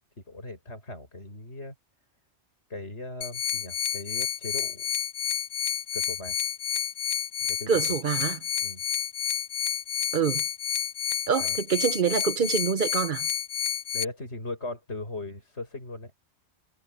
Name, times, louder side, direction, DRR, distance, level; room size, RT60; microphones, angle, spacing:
voice 1, 0.3-1.7 2.7-4.9 5.9-6.4 7.5-7.8 8.6-8.8 11.4-11.6 13.9-16.1, left 2 dB, 70° left, 7.6 m, -38 dB
sound 1, 3.2-14.0, left 9 dB, 50° left, 0.6 m, -30 dB
voice 2, 7.7-8.4 10.1-10.4 11.3-13.3, right 6 dB, 50° right, 0.8 m, -25 dB
omnidirectional pair, 1.2 m